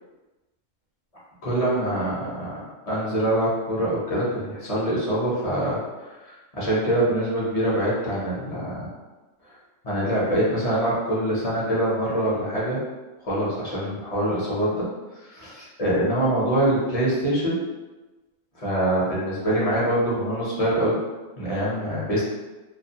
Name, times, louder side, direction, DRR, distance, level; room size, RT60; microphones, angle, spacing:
voice 1, 1.4-2.5 2.9-5.8 6.2-8.9 9.8-12.8 13.2-14.8 15.2-17.6 18.6-21.0 21.4-22.2, right 1 dB, 35° left, -7 dB, 0.6 m, -24 dB
2.4 x 2.2 x 2.7 m, 1.2 s
omnidirectional pair, 1.3 m